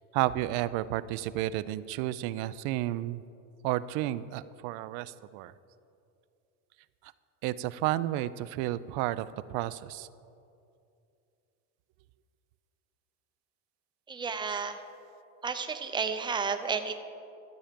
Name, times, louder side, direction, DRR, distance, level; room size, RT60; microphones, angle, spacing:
voice 1, 0.1-3.2 3.6-5.5 7.4-10.1, right 15 dB, 60° right, 16 dB, 0.5 m, -31 dB
voice 2, 14.1-14.8 15.4-17.0, right 5 dB, 10° right, 7 dB, 0.6 m, -32 dB
13.0 x 7.3 x 5.1 m, 2.6 s
supercardioid pair, 105°, 42 cm